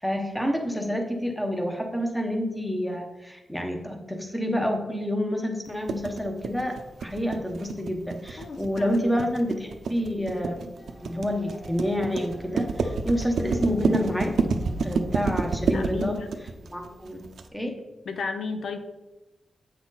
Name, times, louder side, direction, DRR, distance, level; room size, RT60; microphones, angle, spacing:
voice 1, 0.0-10.7 11.0-14.4 14.8-16.2 16.7-17.2 17.5-17.8, equal, 5° left, 3 dB, 1.0 m, -28 dB
sound 1, 5.9-17.4, right 4 dB, 80° right, 0.6 m, -28 dB
voice 2, 8.4-8.9 15.7-16.3 18.1-18.8, left 4 dB, 75° left, 8 dB, 0.7 m, -33 dB
sound 2, 10.8-16.1, left 1 dB, 35° left, 1.5 m, -46 dB
8.2 x 6.0 x 4.0 m, 1.1 s
wide cardioid pair, 160°, 0 cm